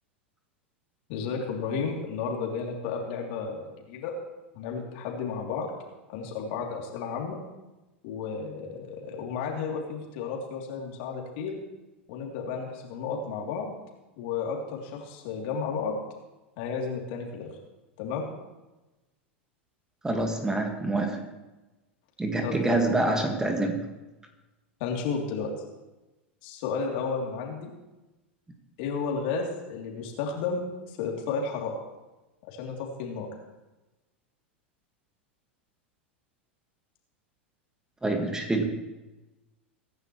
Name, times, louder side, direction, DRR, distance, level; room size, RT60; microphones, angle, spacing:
voice 1, 1.1-4.1 4.5-7.4 8.0-11.6 12.1-13.7 14.2-16.0 16.6-17.6 18.0-18.2 22.4-22.8 24.8-25.5 26.4-27.7 28.8-31.8 32.5-33.3, left 5 dB, 55° left, 0 dB, 3.3 m, -32 dB
voice 2, 20.0-21.3 22.2-23.8 38.0-38.7, right 2 dB, 10° right, 4 dB, 1.9 m, -26 dB
23.5 x 11.0 x 3.2 m, 1.1 s
figure-of-eight pair, 90°, 6 cm